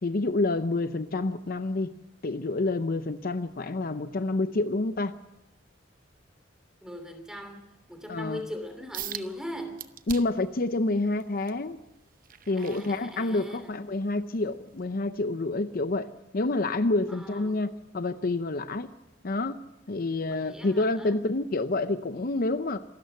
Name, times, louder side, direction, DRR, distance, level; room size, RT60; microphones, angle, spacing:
voice 1, 0.0-1.9 2.2-5.1 8.1-8.4 10.1-11.8 12.5-18.9 19.2-19.6 19.9-22.8, left 2 dB, 50° left, 11 dB, 0.7 m, -28 dB
voice 2, 6.8-7.6 7.9-9.8 12.6-13.7 17.1-17.6 20.3-21.2, equal, 5° right, 6 dB, 2.9 m, -40 dB
sound 1, 8.9-9.3 9.8-10.5 11.0-13.5 14.0-14.3 14.8-14.9, right 10 dB, 50° right, 0.8 m, -41 dB
26.0 x 13.0 x 7.9 m, 0.96 s
head